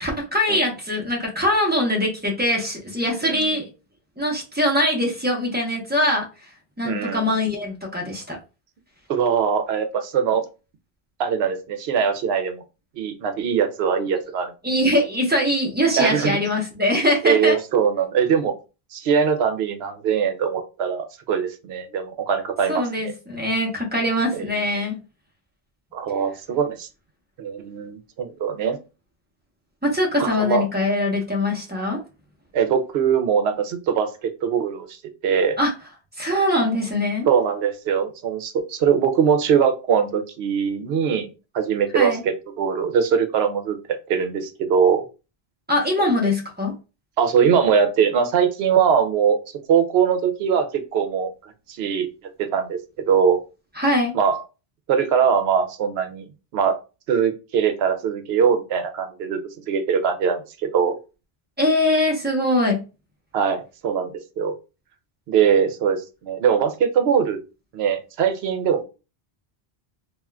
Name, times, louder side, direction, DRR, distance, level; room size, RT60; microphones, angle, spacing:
voice 1, 0.0-3.7 4.2-6.2 6.8-8.4 14.6-17.6 22.7-25.0 29.8-32.0 35.6-35.7 36.2-37.3 41.9-42.2 45.7-46.8 53.8-54.1 61.6-62.8, left 1 dB, 10° right, -1 dB, 0.8 m, -22 dB
voice 2, 6.8-7.2 9.1-10.4 11.2-12.6 13.0-14.5 16.0-16.4 17.2-18.5 18.9-22.9 24.4-24.5 25.9-26.9 27.4-28.8 30.2-30.6 32.5-35.0 35.2-35.6 37.3-41.3 41.5-43.8 44.1-45.0 47.2-49.4 49.7-52.1 52.4-52.8 53.1-53.4 54.1-54.4 54.9-56.3 56.5-56.8 57.1-59.4 59.7-61.0 63.3-64.5 65.3-67.4 67.7-68.8, right 7 dB, 80° right, 7 dB, 0.8 m, -21 dB
3.5 x 2.4 x 2.2 m, 0.30 s
omnidirectional pair, 1.1 m